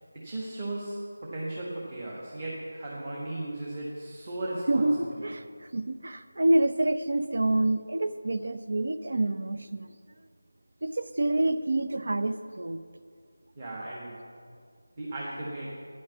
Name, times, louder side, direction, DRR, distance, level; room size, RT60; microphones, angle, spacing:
voice 1, 0.1-4.9 5.2-5.3 13.5-14.2 15.0-15.8, right 1 dB, 30° right, -5 dB, 1.6 m, -36 dB
voice 2, 4.7-5.4 5.7-9.9 10.8-12.8, right 1 dB, 60° right, 10 dB, 0.6 m, -27 dB
9.9 x 6.4 x 7.0 m, 2.1 s
figure-of-eight pair, 165°, 0 cm